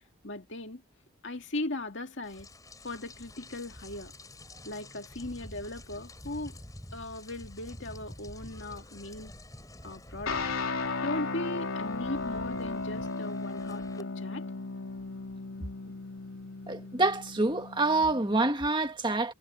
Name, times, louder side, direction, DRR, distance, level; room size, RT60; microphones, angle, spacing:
voice 1, 0.2-0.8 1.2-2.5 2.8-4.1 4.6-6.5 6.9-9.3 9.8-14.4, left 2 dB, 55° left, 2.5 m, -38 dB
Rain, 2.2-14.0, left 1 dB, 15° left, 7.0 m, -48 dB
sound 1, 10.3-18.5, left 3 dB, 75° left, 3.6 m, -36 dB
voice 2, 16.7-19.3, right 2 dB, 20° right, 1.8 m, -27 dB
head